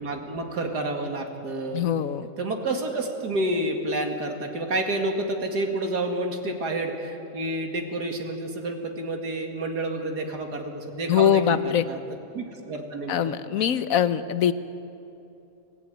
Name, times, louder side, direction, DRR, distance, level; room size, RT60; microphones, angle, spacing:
voice 1, 0.0-1.9 2.4-12.0 12.3-13.4, right 2 dB, 80° right, 3 dB, 2.7 m, -29 dB
voice 2, 1.7-2.3 11.1-11.8 13.1-14.5, left 9 dB, 60° left, 12 dB, 1.2 m, -22 dB
25.0 x 16.0 x 9.2 m, 2.8 s
omnidirectional pair, 1.7 m